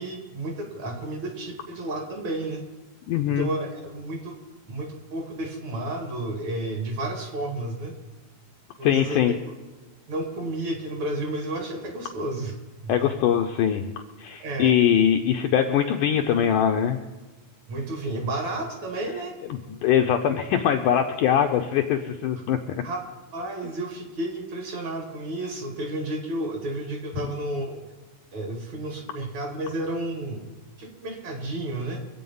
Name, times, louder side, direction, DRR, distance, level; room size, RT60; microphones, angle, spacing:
voice 1, 0.0-2.6 3.2-4.3 4.7-7.9 8.8-9.5 10.1-12.5 12.8-13.1 14.4-14.8 17.7-19.3 22.8-23.0 23.3-27.8 28.3-30.5 30.8-32.0, right 1 dB, 50° right, 4 dB, 2.7 m, -31 dB
voice 2, 3.1-3.5 8.8-9.3 12.9-13.9 14.2-17.0 19.5-22.8, left 9 dB, 75° left, 4 dB, 1.9 m, -22 dB
24.5 x 8.5 x 5.5 m, 1.2 s
omnidirectional pair, 4.4 m